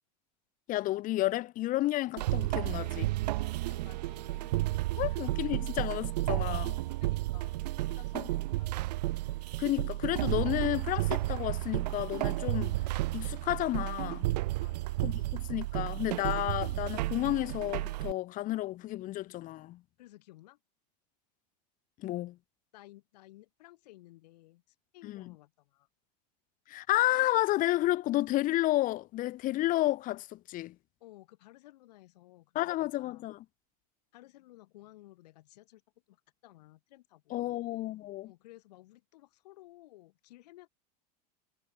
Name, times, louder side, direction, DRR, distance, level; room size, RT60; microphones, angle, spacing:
voice 1, 0.7-3.1 5.0-6.8 9.6-12.8 13.1-14.3 15.0-19.8 22.0-22.4 25.0-25.3 26.7-30.7 32.5-33.4 37.3-38.3, left 16 dB, 40° left, 1.2 m, -31 dB
sound 1, 2.2-18.1, right 18 dB, 80° right, 0.7 m, -32 dB
voice 2, 3.6-4.6 5.0-5.2 7.0-9.0 14.6-15.0 20.0-20.6 22.7-25.9 31.0-33.3 34.1-35.8 36.1-36.2 36.4-37.7 38.2-40.7, left 17 dB, 75° left, 5.0 m, -56 dB
supercardioid pair, 120°, 21 cm